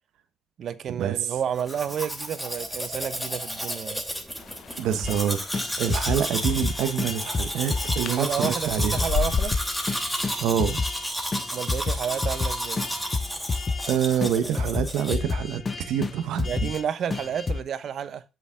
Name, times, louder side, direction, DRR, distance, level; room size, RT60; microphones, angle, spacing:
voice 1, 0.6-4.0 8.0-9.5 11.5-12.8 16.4-18.2, right 8 dB, 65° right, 1.0 m, -30 dB
Domestic sounds home sounds, 1.6-15.2, equal, ahead, 3.2 m, -32 dB
sound 1, 4.4-9.6, left 8 dB, 70° left, 0.5 m, -35 dB
voice 2, 4.8-5.4 5.8-9.0 10.4-10.8 13.9-15.6 15.9-16.7, right 9 dB, 90° right, 1.1 m, -26 dB
sound 2, 5.0-5.3 5.5-8.1 8.4-8.5 8.8-11.0 11.3-13.9 14.2-16.8 17.1-17.6, left 4 dB, 35° left, 1.2 m, -29 dB
7.6 x 7.1 x 3.6 m
cardioid pair, 90°, 0 cm